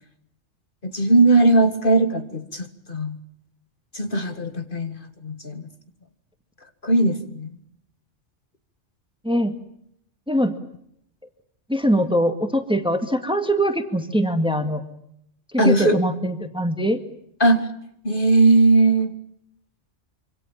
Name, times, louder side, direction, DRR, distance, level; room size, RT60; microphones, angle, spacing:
voice 1, 0.8-3.2 3.9-5.6 6.8-7.5 15.6-16.0 17.4-17.7 18.0-19.1, right 2 dB, 45° left, 7 dB, 2.1 m, -19 dB
voice 2, 9.2-9.6 10.3-10.6 11.7-14.8 15.5-17.0, equal, 5° right, 7 dB, 2.1 m, -22 dB
26.5 x 25.5 x 7.4 m, 0.74 s
omnidirectional pair, 1.2 m